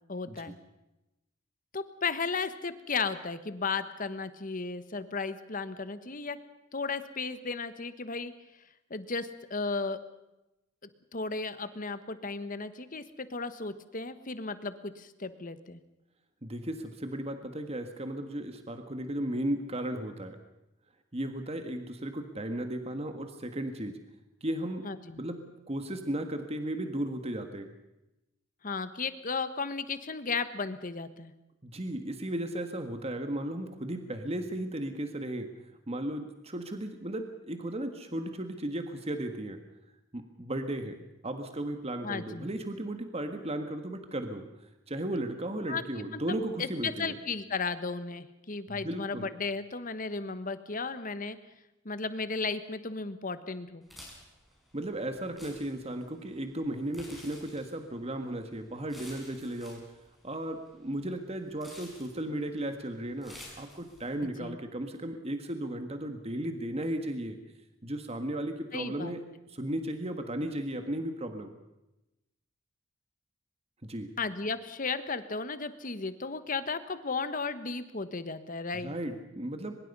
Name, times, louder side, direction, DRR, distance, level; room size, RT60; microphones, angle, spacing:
voice 1, 0.1-0.6 1.7-6.4 6.7-8.3 8.9-10.0 11.1-15.8 24.8-25.2 28.6-31.3 42.0-42.5 45.7-46.2 46.6-51.4 51.8-53.8 64.2-64.6 68.7-69.1 74.2-78.9, left 4 dB, 45° left, 12 dB, 1.3 m, -35 dB
voice 2, 16.4-20.4 21.1-24.0 24.4-24.9 25.2-27.7 31.6-35.5 35.9-39.6 40.1-44.4 44.9-47.2 48.7-49.3 54.7-59.8 60.2-67.4 67.8-69.2 69.5-71.6 73.8-74.1 78.7-79.8, right 1 dB, 30° right, 7 dB, 1.6 m, -35 dB
sound 1, 53.8-64.2, left 1 dB, ahead, 6.3 m, -53 dB
24.0 x 21.5 x 5.5 m, 0.95 s
head